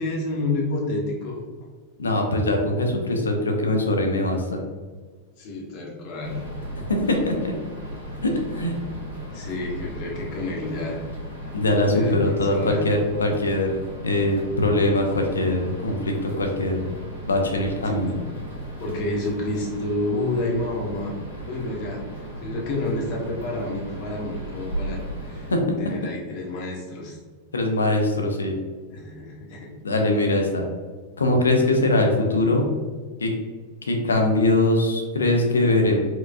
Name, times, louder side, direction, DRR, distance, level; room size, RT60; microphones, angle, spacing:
voice 1, 0.0-1.4 5.4-6.4 9.3-11.0 11.9-12.8 17.8-18.1 18.8-21.1 21.4-25.5 25.8-27.2 28.9-29.7, left 2 dB, 45° left, -2 dB, 0.9 m, -29 dB
voice 2, 2.0-4.6 6.9-7.5 8.2-8.7 11.5-16.8 17.2-18.1 25.5-25.8 27.5-28.6 29.8-30.6 31.2-32.6 33.2-33.3 33.9-36.0, left 1 dB, 75° left, 2 dB, 0.6 m, -22 dB
sound 1, 6.2-25.5, right 1 dB, 85° right, 1.0 m, -36 dB
4.5 x 2.3 x 2.5 m, 1.4 s
figure-of-eight pair, 90°, 0 cm